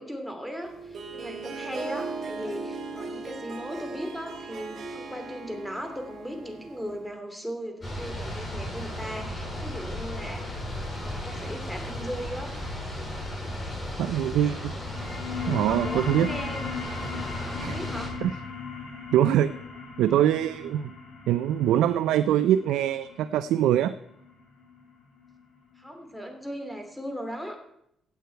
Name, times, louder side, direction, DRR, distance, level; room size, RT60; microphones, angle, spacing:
voice 1, 0.0-10.6 10.9-12.5 15.4-16.7 17.5-18.2 25.8-27.6, equal, ahead, 4 dB, 2.7 m, -37 dB
Harp, 0.6-7.1, right 4 dB, 50° right, 2.7 m, -38 dB
sound 1, 7.8-18.1, left 1 dB, 20° left, 5.2 m, -35 dB
voice 2, 14.0-14.7 15.5-16.3 17.6-17.8 18.2-18.3 19.1-19.5 20.0-20.9 21.3-23.9, right 11 dB, 85° right, 12 dB, 0.4 m, -23 dB
sound 2, 14.7-25.8, left 5 dB, 90° left, 4.9 m, -38 dB
15.5 x 8.4 x 4.6 m, 0.76 s
cardioid pair, 90°, 0 cm